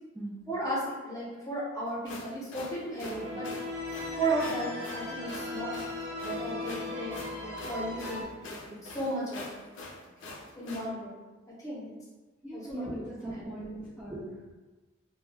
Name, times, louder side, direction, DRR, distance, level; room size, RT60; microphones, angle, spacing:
voice 1, 0.5-3.5 4.2-5.7 6.2-7.1 7.4-9.4 10.6-11.2 11.6-11.9 12.5-13.5, right 2 dB, 15° left, -7 dB, 0.7 m, -35 dB
sound 1, 1.9-10.9, left 2 dB, 70° left, 0.4 m, -44 dB
sound 2, 3.1-8.2, left 2 dB, 60° right, 0.8 m, -37 dB
voice 2, 12.4-14.5, right 1 dB, 10° right, -9 dB, 0.3 m, -39 dB
2.2 x 2.2 x 3.2 m, 1.2 s
head